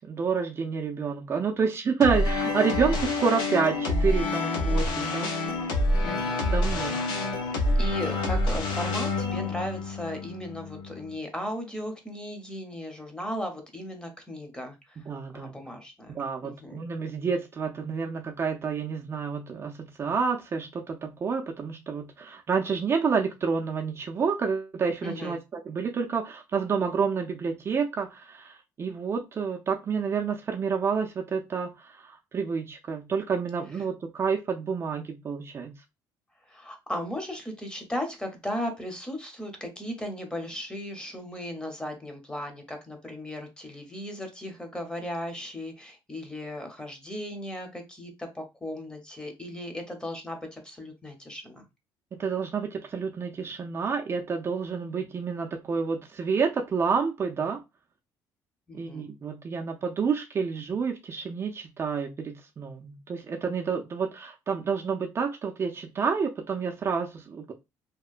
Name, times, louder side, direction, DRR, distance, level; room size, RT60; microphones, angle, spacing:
voice 1, 0.1-5.3 6.5-7.1 15.1-15.5 16.1-25.4 25.7-35.7 52.1-57.6 58.7-67.5, right 5 dB, 35° right, 0.4 m, -29 dB
sound 1, 2.0-11.2, left 2 dB, 80° left, 0.6 m, -27 dB
voice 2, 6.0-7.0 7.7-15.0 15.3-16.2 16.4-16.8 25.0-25.4 36.5-51.6 58.7-59.1, left 1 dB, 10° left, 0.8 m, -36 dB
2.9 x 2.0 x 2.4 m
cardioid pair, 105°, 8 cm